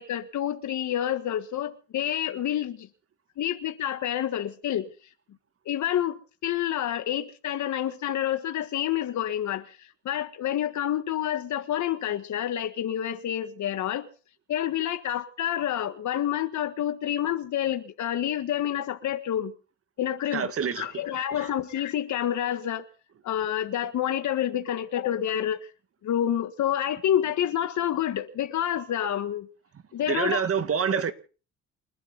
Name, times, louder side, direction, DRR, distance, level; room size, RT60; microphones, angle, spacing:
voice 1, 0.0-2.9 3.4-4.9 5.7-6.2 6.4-9.6 10.0-14.1 14.5-19.5 20.0-22.8 23.2-25.6 26.0-29.5 29.9-30.4, left 11 dB, 70° left, 1.7 m, -28 dB
voice 2, 20.3-21.1 21.3-21.5 30.1-31.1, right 7 dB, 50° right, 1.9 m, -27 dB
29.0 x 12.0 x 4.1 m
cardioid pair, 90°, 30 cm